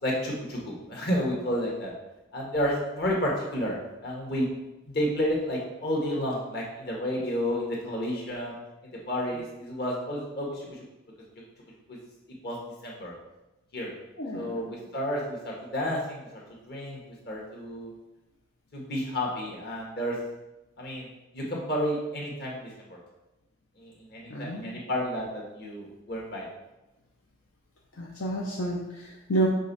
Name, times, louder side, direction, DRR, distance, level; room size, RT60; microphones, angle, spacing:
voice 1, 0.0-1.9 2.3-3.7 4.0-4.5 4.9-8.6 8.8-10.8 11.9-12.0 12.4-12.6 12.8-13.1 13.7-13.9 14.3-16.4 16.7-17.0 17.2-17.9 18.7-20.2 20.8-21.1 21.3-22.7 23.8-26.5, equal, 50° left, -2 dB, 1.6 m, -31 dB
voice 2, 14.2-14.8 24.3-24.8 28.0-29.5, right 2 dB, 75° left, -2 dB, 0.8 m, -30 dB
5.5 x 5.2 x 4.1 m, 0.97 s
head